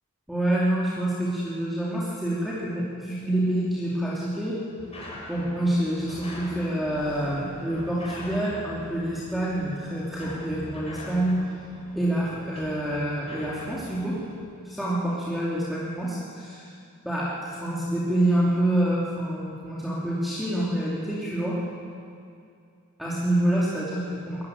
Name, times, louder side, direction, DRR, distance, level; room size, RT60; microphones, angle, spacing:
voice 1, 0.3-4.6 5.3-11.4 11.9-14.2 14.6-16.7 17.0-21.6 23.0-24.4, right 1 dB, ahead, -8 dB, 3.0 m, -27 dB
sound 1, 4.8-14.4, left 1 dB, 30° left, 6.4 m, -42 dB
22.0 x 14.0 x 9.6 m, 2.4 s
head